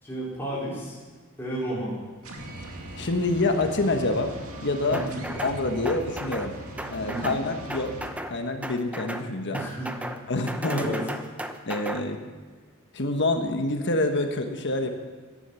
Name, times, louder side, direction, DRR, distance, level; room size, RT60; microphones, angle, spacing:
voice 1, 0.0-1.0 1.4-1.9 4.9-5.2 7.0-7.3 9.5-9.9 10.6-11.0, right 1 dB, 10° left, -8 dB, 4.5 m, -32 dB
sound 1, 2.2-8.1, right 1 dB, 80° right, 2.3 m, -40 dB
voice 2, 3.0-4.3 4.6-5.0 5.4-6.6 6.9-8.0 8.3-9.6 10.3-10.8 11.7-12.2 12.9-14.9, left 2 dB, 55° left, 5 dB, 1.3 m, -26 dB
sound 2, 4.9-5.6 5.9-6.5 6.8-7.4 7.7-8.3 8.6-9.3 9.5-10.2 10.5-12.0, right 1 dB, 5° right, 0.9 m, -35 dB
16.5 x 11.5 x 7.0 m, 1.4 s
head